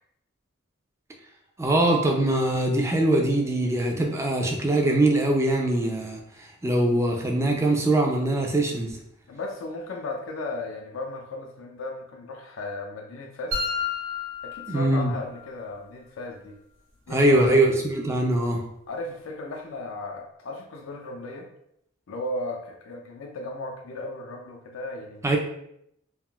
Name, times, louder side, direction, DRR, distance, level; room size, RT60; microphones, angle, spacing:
voice 1, 1.6-9.0 14.7-15.1 17.1-18.7 25.2-25.4, right 1 dB, 15° right, 1 dB, 0.3 m, -22 dB
voice 2, 9.3-13.6 14.4-16.6 17.1-17.6 18.9-21.5 22.1-25.2, left 2 dB, 75° left, 2 dB, 0.4 m, -35 dB
sound 1, 13.5-15.5, left 4 dB, 80° right, 1.1 m, -31 dB
3.4 x 2.5 x 2.3 m, 0.76 s
head